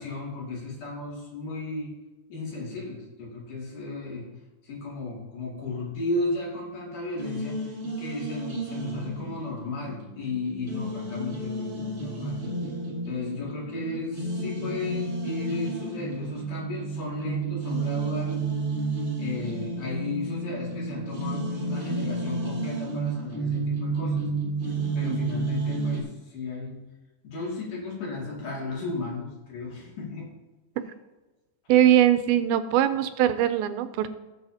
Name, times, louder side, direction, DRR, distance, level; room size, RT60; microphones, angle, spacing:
voice 1, 0.0-1.9 2.3-4.3 4.6-12.4 13.1-18.4 19.2-24.3 24.9-26.8 27.2-30.3, left 3 dB, 60° left, -4 dB, 3.8 m, -34 dB
sound 1, 7.1-26.0, right 3 dB, 25° right, 1.2 m, -31 dB
voice 2, 31.7-34.1, right 11 dB, 85° right, 11 dB, 2.4 m, -21 dB
19.0 x 6.7 x 2.8 m, 1.1 s
omnidirectional pair, 4.3 m